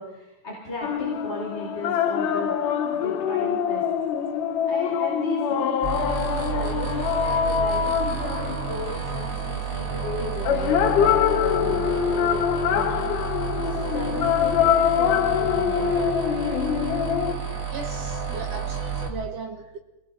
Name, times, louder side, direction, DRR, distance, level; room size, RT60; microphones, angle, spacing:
voice 1, 0.0-2.5 2.9-3.8 4.6-12.4 12.7-16.2, left 1 dB, 15° left, -6 dB, 5.7 m, -36 dB
sound 1, 0.8-9.1 10.5-17.3, left 8 dB, 65° left, 2.3 m, -24 dB
sound 2, 5.8-19.1, right 6 dB, 25° right, 2.1 m, -30 dB
voice 2, 17.7-19.8, right 5 dB, 65° right, 5 dB, 1.6 m, -36 dB
28.0 x 21.5 x 4.3 m, 0.90 s
omnidirectional pair, 4.7 m